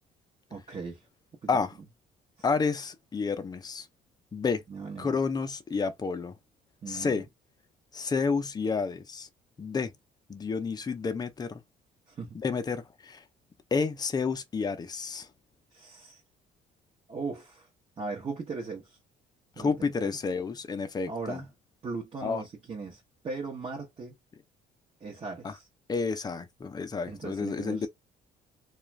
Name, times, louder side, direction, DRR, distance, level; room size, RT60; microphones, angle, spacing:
voice 1, 0.5-1.0 1.4-1.6 4.7-5.1 6.8-7.2 12.1-12.4 15.7-16.2 17.1-17.7 18.0-19.0 19.6-20.1 21.1-21.5 21.8-24.2 25.0-25.7 27.1-27.9, right 4 dB, 35° right, 0.9 m, -38 dB
voice 2, 2.4-3.9 4.3-4.6 5.0-6.3 6.9-7.2 7.9-9.3 9.6-9.9 10.3-11.6 12.3-13.2 13.7-15.3 19.6-21.4 22.2-22.4 25.4-25.5 25.9-27.9, left 5 dB, 25° left, 0.6 m, -30 dB
2.4 x 2.4 x 3.2 m
cardioid pair, 110°, 17 cm